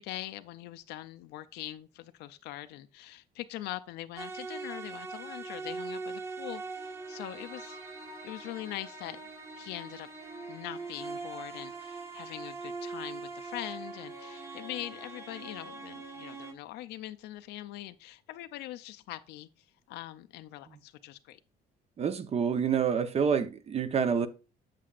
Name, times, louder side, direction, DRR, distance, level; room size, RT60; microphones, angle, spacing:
voice 1, 0.0-7.8 8.2-9.2 9.5-10.1 10.5-21.4, left 15 dB, 85° left, 0.5 m, -42 dB
sound 1, 4.2-16.5, right 3 dB, 15° right, 1.4 m, -42 dB
voice 2, 22.0-24.3, right 7 dB, 40° right, 0.7 m, -27 dB
7.6 x 7.3 x 2.4 m
cardioid pair, 110°, 17 cm